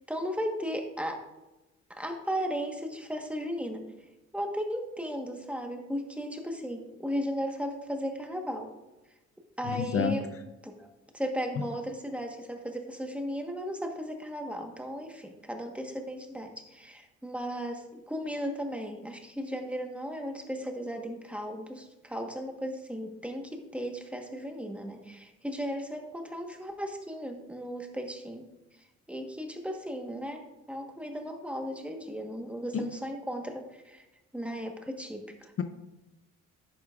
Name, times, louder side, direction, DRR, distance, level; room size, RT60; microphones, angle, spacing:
voice 1, 0.1-1.2 1.9-3.8 4.3-8.7 9.6-10.2 10.6-10.9 11.1-28.5 29.1-30.4 30.7-34.0 34.3-35.5, equal, 5° right, 1.3 m, -36 dB
voice 2, 9.6-10.2 11.6-11.7 32.7-32.9 35.6-35.7, left 7 dB, 50° left, 0.7 m, -29 dB
10.5 x 8.5 x 2.5 m
cardioid pair, 90°, 30 cm